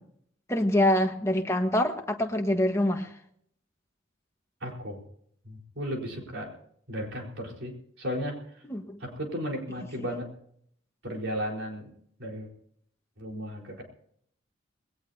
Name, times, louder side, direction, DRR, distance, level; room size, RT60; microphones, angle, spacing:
voice 1, 0.5-3.1 8.7-9.0, left 1 dB, 15° left, 3 dB, 1.5 m, -25 dB
voice 2, 4.6-5.0 5.4-6.5 6.9-8.6 9.0-10.3 11.0-11.9 12.2-12.5 13.2-13.8, equal, 65° right, 0 dB, 4.6 m, -35 dB
20.5 x 18.5 x 2.9 m, 0.66 s
head